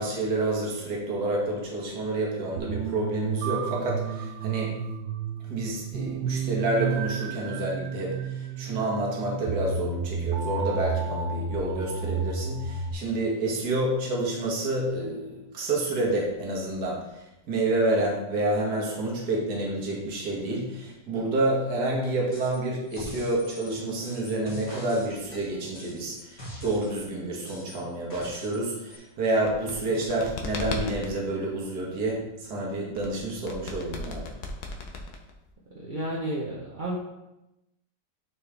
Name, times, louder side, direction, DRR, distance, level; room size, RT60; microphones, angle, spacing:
voice 1, 0.0-4.8 5.5-34.3, right 2 dB, 60° right, -3 dB, 2.1 m, -29 dB
sound 1, 2.6-12.9, right 5 dB, 90° right, 1.4 m, -31 dB
sound 2, 22.3-22.6 22.9-27.0 27.5-28.6 28.9-29.0, left 1 dB, 40° left, 2.5 m, -43 dB
sound 3, 29.3-31.1 33.0-35.5, left 3 dB, 65° left, 1.4 m, -36 dB
voice 2, 35.7-37.0, right 1 dB, 35° right, -5 dB, 0.9 m, -32 dB
10.0 x 4.5 x 3.4 m, 0.92 s
omnidirectional pair, 2.0 m